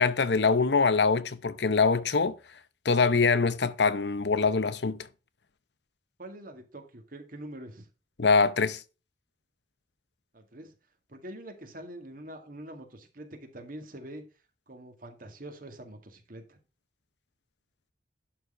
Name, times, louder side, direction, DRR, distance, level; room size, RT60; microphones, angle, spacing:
voice 1, 0.0-2.3 2.8-5.0 8.2-8.8, left 4 dB, 75° left, 0.8 m, -24 dB
voice 2, 6.2-7.9 10.3-10.7 11.1-14.3 14.7-16.6, right 1 dB, 50° right, 2.0 m, -44 dB
11.0 x 4.2 x 5.6 m
head